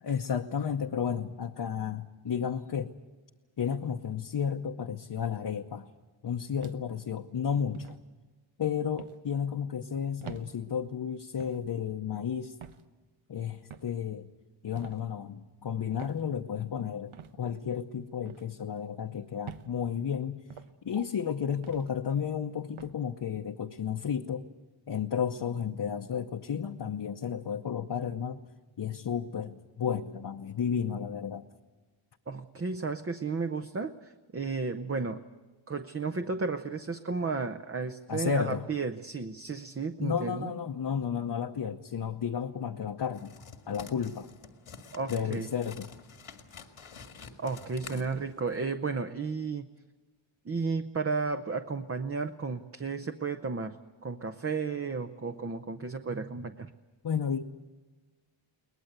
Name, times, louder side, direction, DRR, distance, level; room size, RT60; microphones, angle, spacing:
voice 1, 0.0-2.9 3.6-5.9 6.2-8.0 8.6-12.5 13.3-14.3 14.6-20.4 20.8-24.5 24.9-28.5 28.8-31.4 38.1-38.7 40.0-43.4 43.7-44.3 45.1-45.9 57.0-57.4, left 7 dB, 55° left, 3 dB, 0.9 m, -32 dB
sound 1, 6.6-7.1 7.7-8.0 9.0-9.2 10.2-10.5 11.4-11.6 12.6-12.9 13.7-14.0 14.8-15.0 16.0-16.2 17.1-17.3 18.3-18.5 19.5-19.7 20.5-20.7 21.6-21.9 22.8-23.0, right 8 dB, 80° right, 1.1 m, -45 dB
voice 2, 32.3-35.2 35.7-40.5 44.9-45.5 47.4-49.7 50.5-56.7, right 4 dB, 30° right, 8 dB, 0.7 m, -33 dB
sound 2, 43.1-48.7, left 5 dB, 90° left, 2.1 m, -48 dB
22.5 x 19.5 x 8.0 m, 1.3 s
wide cardioid pair, 110°, 48 cm